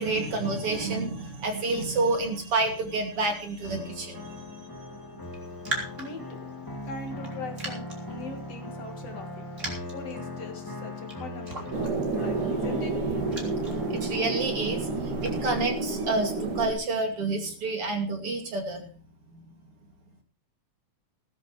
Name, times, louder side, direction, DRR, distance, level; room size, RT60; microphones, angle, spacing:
voice 1, 0.0-4.7 13.9-18.8, right 3 dB, 50° right, 3 dB, 3.1 m, -29 dB
sound 1, 3.6-15.7, left 1 dB, 10° left, 1.6 m, -39 dB
Raindrop, 5.2-15.9, right 2 dB, 25° right, 3.6 m, -42 dB
voice 2, 5.9-6.5 6.8-9.5 9.9-13.0, left 3 dB, 55° left, 5 dB, 2.8 m, -41 dB
sound 2, 11.7-16.7, right 3 dB, 80° right, 3.6 m, -30 dB
18.5 x 13.0 x 3.1 m, 0.39 s
omnidirectional pair, 3.5 m